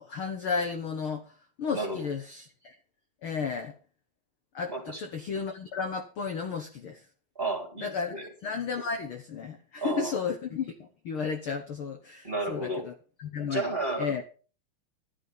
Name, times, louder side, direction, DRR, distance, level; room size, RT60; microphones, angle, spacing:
voice 1, 0.0-2.7 3.2-3.7 4.5-7.0 7.8-8.1 8.4-12.9 13.2-13.6 14.0-14.2, left 5 dB, 55° left, 5 dB, 1.6 m, -33 dB
voice 2, 1.7-2.1 4.7-5.0 7.3-8.2 9.8-10.2 12.2-12.9 13.5-14.2, right 2 dB, 20° right, 3 dB, 3.0 m, -32 dB
12.0 x 11.0 x 5.4 m, 0.39 s
omnidirectional pair, 3.6 m